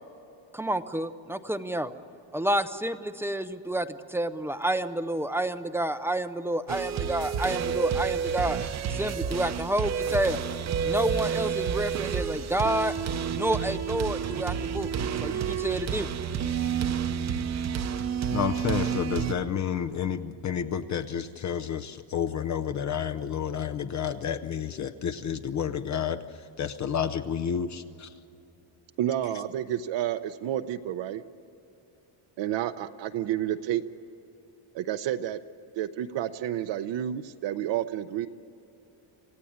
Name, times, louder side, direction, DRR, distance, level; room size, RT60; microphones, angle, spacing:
voice 1, 0.5-1.9 2.3-8.6 8.9-10.4 10.8-12.9 13.3-14.9 15.2-16.1, right 1 dB, 5° right, 10 dB, 0.5 m, -29 dB
sound 1, 6.7-19.3, right 7 dB, 35° right, 0.8 m, -30 dB
voice 2, 18.3-26.2 26.6-28.1, left 8 dB, 35° left, 8 dB, 0.6 m, -30 dB
voice 3, 29.0-31.2 32.4-33.8 34.7-35.4 35.8-38.3, right 11 dB, 65° right, 8 dB, 0.8 m, -30 dB
27.5 x 16.0 x 8.7 m, 2.9 s
cardioid pair, 165°, 48 cm